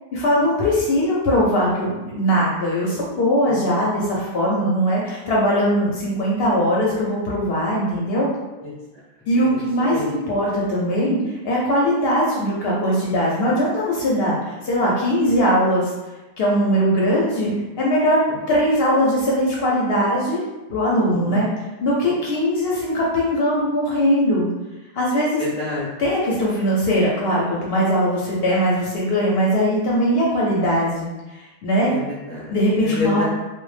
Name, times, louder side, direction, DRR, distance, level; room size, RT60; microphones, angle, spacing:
voice 1, 0.1-8.3 9.3-15.8 16.4-20.4 20.7-21.5 21.8-24.5 24.9-25.4 26.0-31.9 32.5-33.2, equal, 65° left, -4 dB, 0.7 m, -20 dB
voice 2, 21.1-21.4 25.1-25.9 31.9-32.5 32.8-33.2, left 3 dB, 10° left, -6 dB, 0.4 m, -29 dB
2.1 x 2.0 x 3.1 m, 1.1 s
omnidirectional pair, 1.3 m